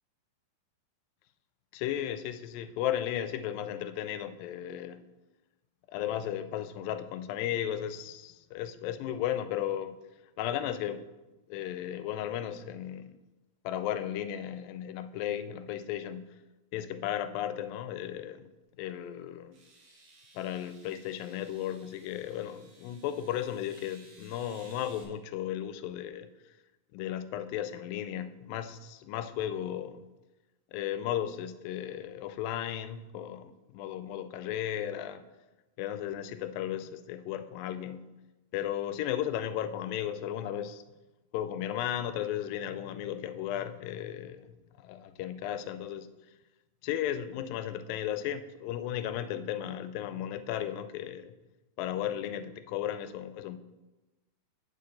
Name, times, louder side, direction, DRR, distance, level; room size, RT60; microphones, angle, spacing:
voice 1, 1.7-5.0 5.9-10.0 10.4-11.0 11.5-13.2 13.6-16.4 16.7-18.5 18.8-19.6 20.4-26.3 26.9-30.0 30.7-35.2 35.8-38.1 38.5-40.8 41.3-44.5 44.8-46.1 46.8-51.4 51.8-53.6, left 11 dB, 85° left, 11 dB, 2.3 m, -35 dB
sound 1, 18.6-18.7 19.5-25.0, right 3 dB, 75° right, 3.1 m, -58 dB
8.5 x 6.9 x 3.8 m, 1.1 s
omnidirectional pair, 4.0 m